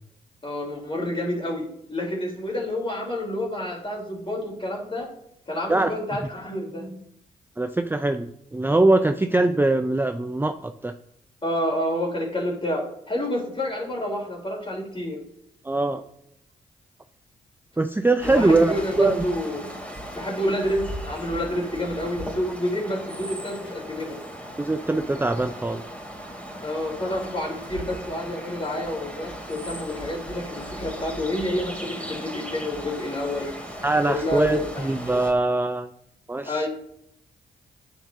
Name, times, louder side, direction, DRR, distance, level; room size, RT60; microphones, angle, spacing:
voice 1, 0.4-5.1 5.5-7.0 11.4-15.2 18.2-19.8 20.1-24.2 26.6-33.5 34.1-34.9 36.5-36.7, left 1 dB, 30° left, -1 dB, 3.6 m, -29 dB
voice 2, 7.6-10.9 15.6-16.0 17.8-19.3 24.6-25.8 33.8-35.9 36.3-36.7, right 2 dB, 10° right, 8 dB, 0.5 m, -22 dB
sound 1, 18.2-35.3, equal, 5° left, 3.1 m, -37 dB
10.0 x 8.4 x 2.8 m, 0.75 s
hypercardioid pair, 45°, 18 cm